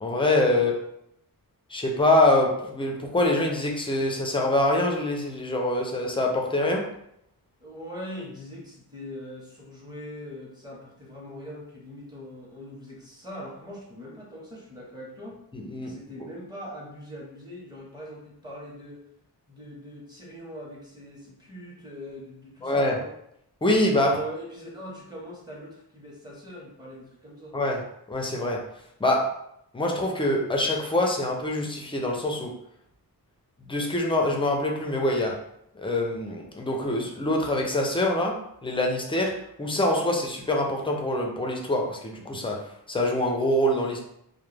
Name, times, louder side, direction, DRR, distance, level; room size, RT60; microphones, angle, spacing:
voice 1, 0.0-0.7 1.7-6.8 15.5-15.9 22.6-23.0 23.6-24.2 27.5-27.8 28.1-28.6 29.0-29.3 29.7-32.5 33.7-35.4 35.8-42.6 42.9-44.0, left 1 dB, 15° left, 0 dB, 0.3 m, -25 dB
voice 2, 7.6-15.4 15.8-19.0 19.5-23.1 24.0-27.5, equal, 10° right, -4 dB, 0.7 m, -41 dB
2.2 x 2.1 x 3.1 m, 0.76 s
wide cardioid pair, 130°, 39 cm